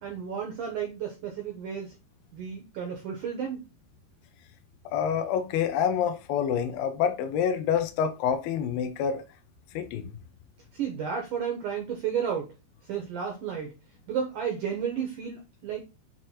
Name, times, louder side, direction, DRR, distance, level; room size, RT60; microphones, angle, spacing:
voice 1, 0.0-1.9 2.3-3.6 10.7-12.5 12.9-13.7 14.1-15.8, right 7 dB, 75° right, 1.9 m, -32 dB
voice 2, 4.9-9.2 9.7-10.1, left 8 dB, 75° left, 2.3 m, -27 dB
8.0 x 3.2 x 4.3 m
omnidirectional pair, 5.3 m